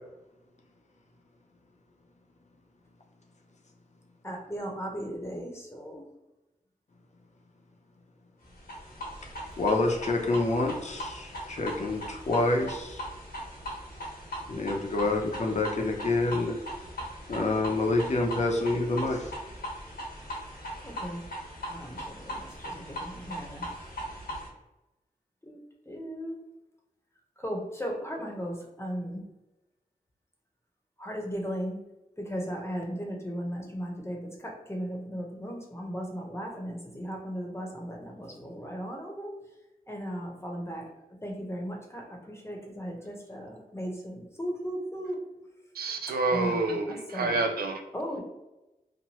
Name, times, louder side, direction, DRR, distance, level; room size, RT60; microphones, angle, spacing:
voice 1, 4.2-6.0 20.8-21.2 21.7-23.7 25.4-25.6 25.9-26.4 27.4-29.2 31.0-31.8 32.2-39.3 39.9-40.9 41.2-45.2 46.3-47.3 47.9-48.2, equal, 15° left, 0 dB, 0.9 m, -36 dB
sound 1, 8.6-24.5, equal, 80° left, 1.1 m, -39 dB
voice 2, 9.6-13.0 14.5-16.6 17.3-19.3, left 2 dB, 50° left, 1 dB, 0.6 m, -27 dB
voice 3, 45.7-47.8, right 3 dB, 85° right, 5 dB, 0.5 m, -28 dB
2.9 x 2.1 x 3.0 m, 1.0 s
cardioid pair, 55°, 15 cm